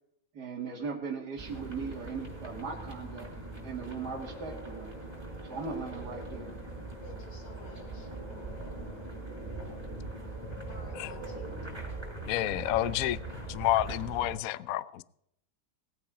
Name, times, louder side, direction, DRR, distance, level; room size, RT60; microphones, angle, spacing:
voice 1, 0.3-3.3 3.6-5.0 5.4-6.5, right 5 dB, 50° right, -1 dB, 2.5 m, -38 dB
sound 1, 1.4-14.4, right 2 dB, 10° right, 5.5 m, -41 dB
voice 2, 7.0-8.1 10.6-11.9, left 2 dB, 55° left, 3 dB, 4.0 m, -52 dB
voice 3, 12.3-13.2 13.5-15.0, left 14 dB, 85° left, 18 dB, 0.7 m, -29 dB
19.5 x 8.8 x 4.9 m, 0.76 s
omnidirectional pair, 2.2 m